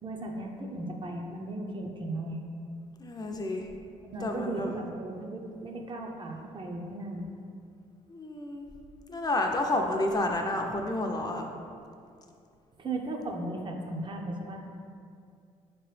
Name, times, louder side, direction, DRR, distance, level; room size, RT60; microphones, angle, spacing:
voice 1, 0.0-2.4 4.1-7.3 12.8-14.6, right 2 dB, 35° right, 1 dB, 0.5 m, -36 dB
voice 2, 3.0-3.7 4.2-4.8 8.1-8.7 9.1-11.5, left 1 dB, 25° left, 2 dB, 0.5 m, -30 dB
4.4 x 3.0 x 3.2 m, 2.4 s
supercardioid pair, 60°, 15 cm